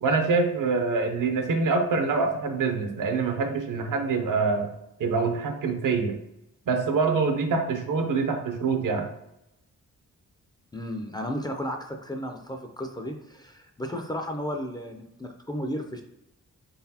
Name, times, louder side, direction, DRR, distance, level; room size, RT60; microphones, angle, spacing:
voice 1, 0.0-4.7 5.0-6.2 6.7-9.1, right 4 dB, 75° right, 5 dB, 0.7 m, -25 dB
voice 2, 10.7-16.0, equal, 15° left, 3 dB, 0.4 m, -34 dB
3.9 x 3.9 x 2.8 m, 0.82 s
wide cardioid pair, 130°, 32 cm